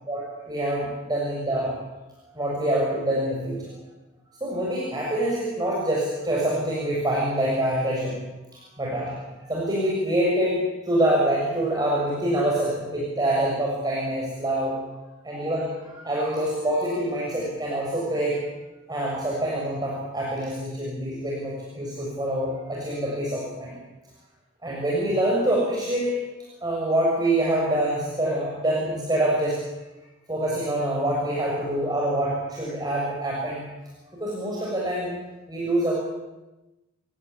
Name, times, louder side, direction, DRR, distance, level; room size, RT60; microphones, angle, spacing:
voice 1, 0.1-1.7 2.3-3.7 4.4-8.2 8.5-10.6 10.8-14.7 15.2-18.4 18.9-23.7 24.6-26.2 26.6-29.6 30.3-33.6 34.1-35.1 35.5-35.9, right 1 dB, 20° right, -3 dB, 6.8 m, -25 dB
29.0 x 17.5 x 9.9 m, 1.1 s
head